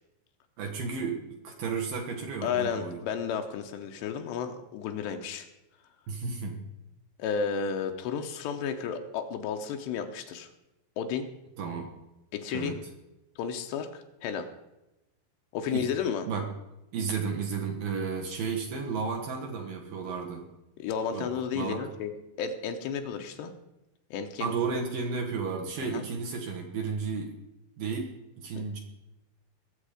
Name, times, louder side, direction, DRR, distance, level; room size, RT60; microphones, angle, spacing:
voice 1, 0.6-3.0 6.1-6.6 11.6-11.9 12.5-12.8 15.7-15.9 16.3-16.5 16.9-20.5 21.1-21.9 24.4-27.4 27.8-28.1 28.4-28.8, right 5 dB, 70° right, 1 dB, 2.2 m, -33 dB
voice 2, 2.4-5.5 7.2-10.5 11.0-11.3 12.3-12.8 13.4-14.5 15.5-16.2 20.8-22.1 22.4-23.5 24.1-24.5 25.8-26.0 28.6-28.7, left 7 dB, 75° left, 5 dB, 2.7 m, -32 dB
21.5 x 7.4 x 5.0 m, 0.94 s
omnidirectional pair, 5.8 m